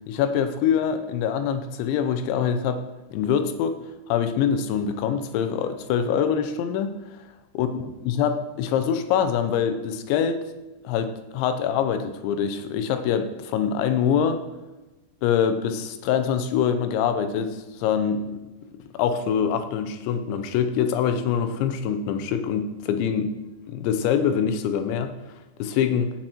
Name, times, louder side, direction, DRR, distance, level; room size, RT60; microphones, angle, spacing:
voice 1, 0.1-2.8 3.1-6.9 7.5-10.4 10.8-14.4 15.2-18.4 18.7-23.4 23.7-25.1 25.6-26.1, left 8 dB, 80° left, 9 dB, 3.0 m, -24 dB
16.5 x 5.9 x 4.5 m, 1.0 s
omnidirectional pair, 5.3 m